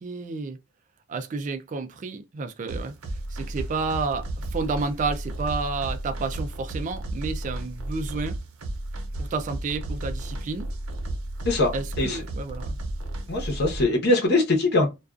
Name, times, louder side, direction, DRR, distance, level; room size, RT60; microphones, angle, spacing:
voice 1, 0.0-0.6 1.1-8.4 9.2-10.7 11.7-12.8, right 4 dB, 35° right, 0.3 m, -31 dB
sound 1, 2.7-13.8, right 1 dB, 90° right, 0.8 m, -33 dB
voice 2, 11.4-12.2 13.3-14.9, left 2 dB, 50° left, 0.8 m, -22 dB
2.4 x 2.3 x 2.3 m
head